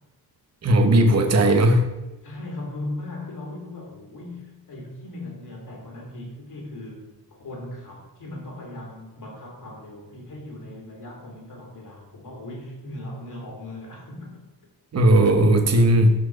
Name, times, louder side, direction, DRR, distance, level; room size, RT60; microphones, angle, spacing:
voice 1, 0.6-1.9 14.9-16.1, right 1 dB, 40° right, 5 dB, 1.0 m, -17 dB
voice 2, 2.2-14.4, left 1 dB, 55° left, 0 dB, 2.8 m, -38 dB
11.5 x 4.5 x 4.6 m, 1.1 s
wide cardioid pair, 175°, 38 cm